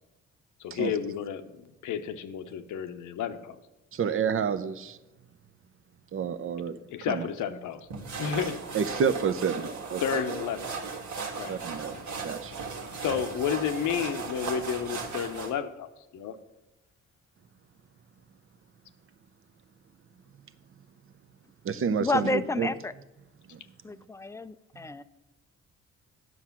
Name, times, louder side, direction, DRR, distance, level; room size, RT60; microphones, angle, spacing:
voice 1, 0.6-3.6 6.9-7.8 8.2-8.6 10.0-10.9 11.3-11.5 12.9-16.3, left 8 dB, 80° left, 9 dB, 0.8 m, -31 dB
voice 2, 3.9-5.0 6.1-6.8 7.1-7.2 8.7-10.0 11.5-12.5 21.6-22.7, right 6 dB, 45° right, 11 dB, 0.6 m, -29 dB
sound 1, 7.9-15.5, right 4 dB, 75° right, 1.6 m, -36 dB
voice 3, 22.0-22.9 23.8-25.0, left 2 dB, 10° left, 13 dB, 0.4 m, -30 dB
9.6 x 6.2 x 5.8 m, 1.0 s
cardioid pair, 90°, 30 cm